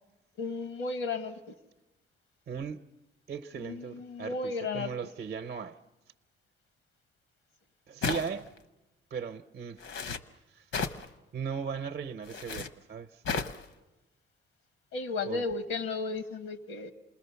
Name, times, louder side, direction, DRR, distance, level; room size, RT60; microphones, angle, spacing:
voice 1, 0.4-1.5 3.6-4.9 14.9-16.9, left 3 dB, 90° left, 1.4 m, -34 dB
voice 2, 2.5-2.8 3.3-5.8 7.9-8.5 9.1-9.9 10.5-10.7 11.3-13.2 15.2-15.4, right 6 dB, 50° right, 0.7 m, -37 dB
sound 1, 8.0-8.6 9.8-10.2 10.7-11.1 12.2-12.7 13.2-13.6, left 5 dB, 75° left, 1.0 m, -33 dB
27.5 x 20.5 x 7.0 m
cardioid pair, 90°, 20 cm